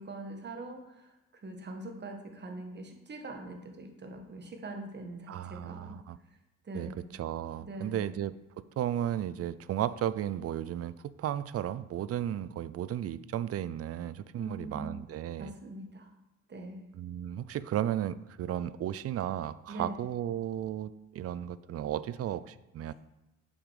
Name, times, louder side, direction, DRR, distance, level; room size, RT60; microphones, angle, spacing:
voice 1, 0.0-6.0 6.6-7.0 7.6-8.1 14.3-15.0 15.4-16.1 16.5-16.8 19.7-20.0 22.9-23.0, right 2 dB, 35° right, 4 dB, 1.4 m, -43 dB
voice 2, 5.3-6.2 6.7-8.3 8.8-15.5 16.9-22.9, right 11 dB, 50° right, 16 dB, 0.4 m, -34 dB
7.1 x 5.1 x 4.9 m, 0.98 s
cardioid pair, 90°, 30 cm